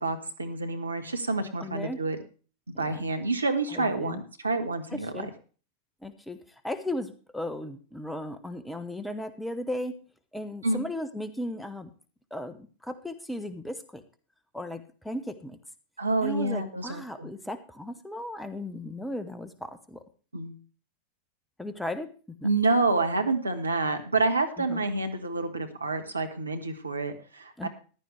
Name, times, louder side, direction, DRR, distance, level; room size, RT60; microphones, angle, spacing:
voice 1, 0.0-2.2 2.8-5.3 10.6-10.8 16.0-17.3 20.3-20.5 22.4-27.7, right 3 dB, 80° right, 6 dB, 1.4 m, -28 dB
voice 2, 1.6-2.0 2.7-3.1 3.7-4.2 4.9-5.3 6.0-6.4 6.6-10.0 10.3-11.9 12.3-14.0 14.5-15.6 16.2-20.0 21.6-22.1 22.4-22.5 24.6-24.8 27.6-27.7, left 1 dB, 5° left, 11 dB, 1.1 m, -36 dB
14.5 x 11.5 x 3.2 m, 0.38 s
figure-of-eight pair, 90°, 0 cm